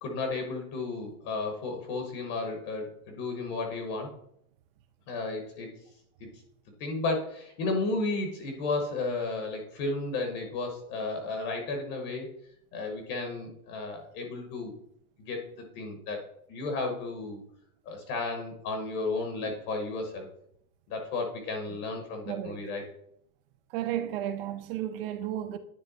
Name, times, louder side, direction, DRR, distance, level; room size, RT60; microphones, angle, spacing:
voice 1, 0.0-4.1 5.1-5.7 6.2-6.3 6.8-12.3 12.7-14.7 15.3-15.4 15.7-17.4 17.8-20.3 20.9-22.9, left 3 dB, 35° left, 1.0 m, -33 dB
voice 2, 22.3-22.6 23.7-25.6, right 11 dB, 40° right, 0.5 m, -33 dB
9.6 x 3.3 x 4.0 m
supercardioid pair, 160°, 45 cm